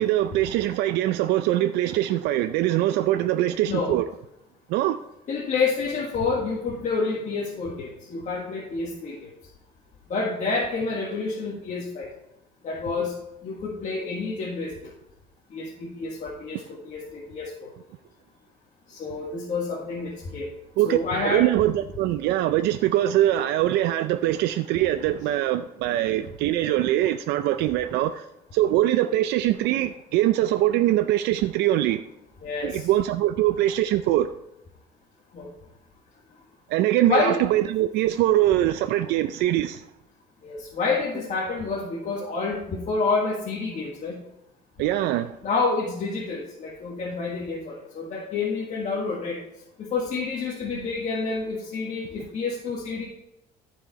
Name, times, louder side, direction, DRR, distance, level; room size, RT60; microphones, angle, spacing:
voice 1, 0.0-4.1 4.7-5.0 20.8-28.3 28.5-32.0 32.6-34.3 36.7-39.8 44.8-45.3, right 13 dB, 85° right, 0.4 m, -23 dB
voice 2, 5.3-9.3 10.1-12.1 12.6-13.1 13.4-14.9 15.5-17.7 18.9-20.5 20.8-21.5 32.4-32.9 35.3-35.5 37.1-37.4 40.4-44.2 45.4-49.4 49.8-53.0, left 4 dB, 45° left, 1.6 m, -28 dB
14.0 x 4.8 x 4.1 m
cardioid pair, 110°, 17 cm